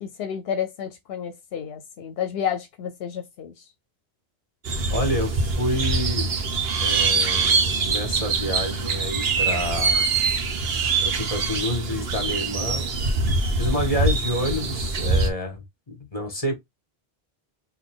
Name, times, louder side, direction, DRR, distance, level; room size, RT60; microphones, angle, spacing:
voice 1, 0.0-3.5, left 8 dB, 80° left, 0.8 m, -30 dB
sound 1, 4.6-15.3, right 3 dB, 75° right, 1.0 m, -24 dB
voice 2, 4.9-6.3 6.8-7.6 7.8-10.1 11.0-12.9 13.6-16.5, equal, 35° left, 1.7 m, -28 dB
4.0 x 2.8 x 3.6 m
omnidirectional pair, 1.0 m